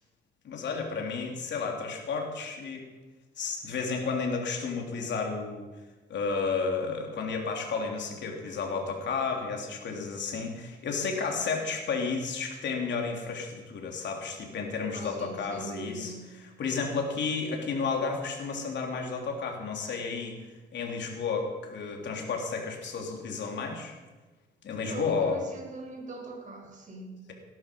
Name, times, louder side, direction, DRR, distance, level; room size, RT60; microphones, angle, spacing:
voice 1, 0.4-2.9 3.4-5.7 6.1-20.3 20.7-23.9 24.6-25.4, left 4 dB, 65° left, 1 dB, 3.6 m, -32 dB
voice 2, 14.9-16.3 24.8-27.1, right 2 dB, 40° right, 1 dB, 5.2 m, -41 dB
18.0 x 12.0 x 5.5 m, 1.2 s
cardioid pair, 90°, 20 cm